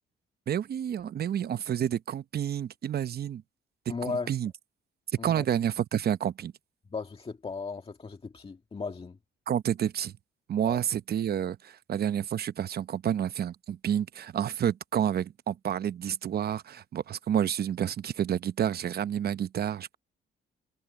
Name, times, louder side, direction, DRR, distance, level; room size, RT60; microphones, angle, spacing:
voice 1, 0.5-3.4 4.3-4.5 5.2-6.5 9.5-10.1 10.5-19.9, right 9 dB, 50° right, 0.8 m, -29 dB
voice 2, 3.9-4.3 5.2-5.5 6.9-9.2 10.6-10.8, left 4 dB, 30° left, 2.1 m, -36 dB
cardioid pair, 90°, 20 cm